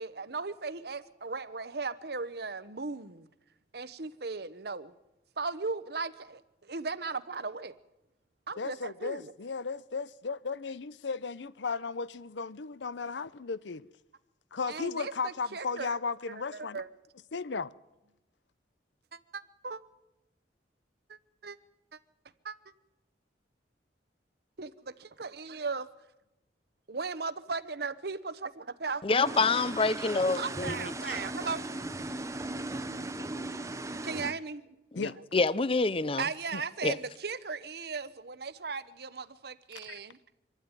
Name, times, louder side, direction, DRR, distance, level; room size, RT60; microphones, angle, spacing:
voice 1, 0.0-3.3 3.7-4.9 5.4-7.7 8.5-9.3 14.7-15.9 16.5-16.9 19.1-19.8 21.1-21.6 21.9-22.0 22.4-22.6 24.6-25.9 26.9-29.0 30.4-31.6 34.0-34.7 35.5-35.6 36.2-40.2, right 4 dB, 60° right, 1.0 m, -37 dB
voice 2, 8.6-13.9 14.5-16.8 17.3-17.7 33.2-33.3 35.0-35.2 36.5-36.6 39.8-40.0, left 4 dB, 80° left, 0.7 m, -35 dB
voice 3, 29.0-30.9 34.9-36.2 36.8-37.0, left 3 dB, 30° left, 0.6 m, -27 dB
sound 1, 29.2-34.3, right 2 dB, 15° right, 0.9 m, -37 dB
25.0 x 12.5 x 9.7 m
head